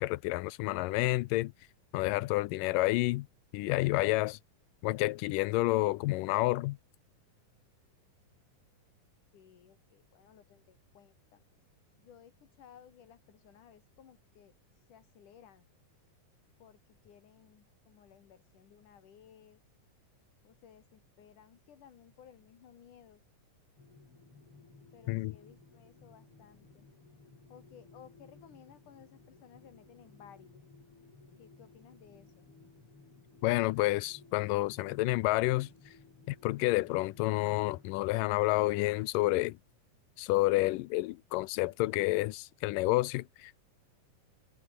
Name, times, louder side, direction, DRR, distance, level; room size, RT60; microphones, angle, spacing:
voice 1, 0.0-1.5 1.9-3.3 3.5-4.4 4.8-6.8 25.1-25.4 33.4-35.7 36.3-39.6 40.2-43.6, left 19 dB, 90° left, 2.2 m, -29 dB
voice 2, 9.3-11.4 12.0-15.7 16.6-19.6 20.4-23.2 24.9-26.9 27.5-30.6 31.4-32.5, left 9 dB, 70° left, 3.7 m, -58 dB
sound 1, 23.8-37.9, left 3 dB, 40° left, 6.2 m, -58 dB
omnidirectional pair, 3.8 m